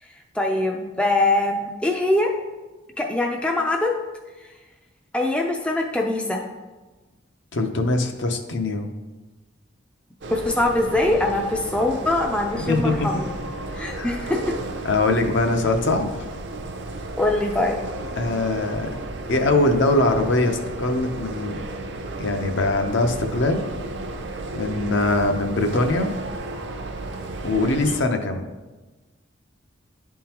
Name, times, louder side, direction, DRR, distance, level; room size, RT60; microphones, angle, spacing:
voice 1, 0.4-2.3 3.0-3.9 5.1-6.4 10.3-13.3 13.7-14.6 17.2-17.8, left 2 dB, 5° left, 1 dB, 0.3 m, -23 dB
voice 2, 7.5-8.9 12.5-13.1 13.9-14.2 14.8-16.3 18.1-18.9 19.3-21.6 22.2-23.7 24.5-26.1 27.4-28.4, left 2 dB, 60° left, 5 dB, 0.6 m, -22 dB
sound 1, 10.2-28.0, right 2 dB, 55° right, 0.5 m, -33 dB
11.0 x 3.7 x 2.9 m, 1.2 s
head